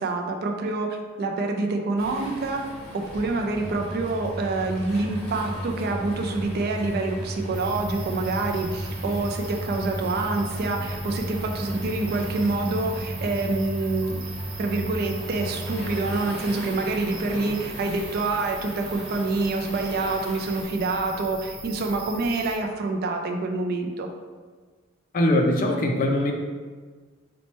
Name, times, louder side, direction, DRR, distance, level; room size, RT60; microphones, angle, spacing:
voice 1, 0.0-2.6 2.9-14.2 14.6-24.1, right 3 dB, 50° right, 3 dB, 0.4 m, -27 dB
Waves surf, 2.0-20.6, equal, 5° left, 1.0 m, -41 dB
sound 1, 3.5-16.2, right 1 dB, 85° left, 0.7 m, -34 dB
sound 2, 7.5-22.6, right 3 dB, 90° right, 0.6 m, -41 dB
voice 2, 25.1-26.3, left 1 dB, 45° left, 2 dB, 0.4 m, -21 dB
2.9 x 2.1 x 4.1 m, 1.4 s
head